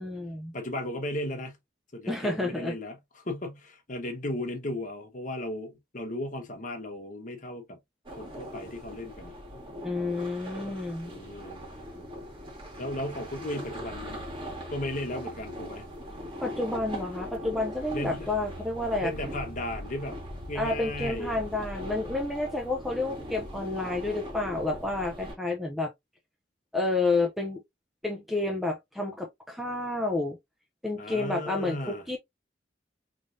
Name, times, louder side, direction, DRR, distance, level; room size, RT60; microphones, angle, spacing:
voice 1, 0.0-0.5 2.1-2.7 9.8-11.1 16.4-19.1 20.5-25.9 26.7-27.6 28.0-30.4 30.8-32.2, left 2 dB, ahead, 0.6 m, -30 dB
voice 2, 0.5-1.5 1.9-7.8 8.2-9.4 11.1-11.6 12.8-14.2 14.7-15.8 17.9-18.3 19.0-20.2 20.5-21.4 31.0-32.0, left 1 dB, 45° left, 1.1 m, -35 dB
sound 1, 8.1-25.4, equal, 30° right, 1.7 m, -40 dB
4.0 x 3.2 x 2.6 m
head